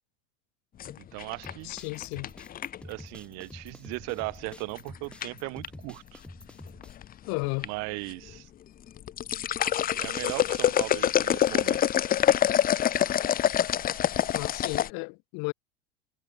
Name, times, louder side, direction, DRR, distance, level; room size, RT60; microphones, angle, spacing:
sound 1, 0.8-2.9 4.5-4.8 5.2-5.7 6.6-7.1 7.4-7.7 8.1-8.2 8.9-14.9, left 10 dB, 30° left, 1.0 m, -26 dB
voice 1, 1.0-1.7 2.8-6.2 7.6-8.5 9.9-11.9, right 28 dB, 60° right, 2.4 m, -37 dB
sound 2, 1.4-6.9, left 1 dB, 5° left, 2.1 m, -48 dB
voice 2, 1.6-2.3 7.3-7.7 14.3-15.5, left 33 dB, 65° left, 4.0 m, -33 dB
supercardioid pair, 120°, 29 cm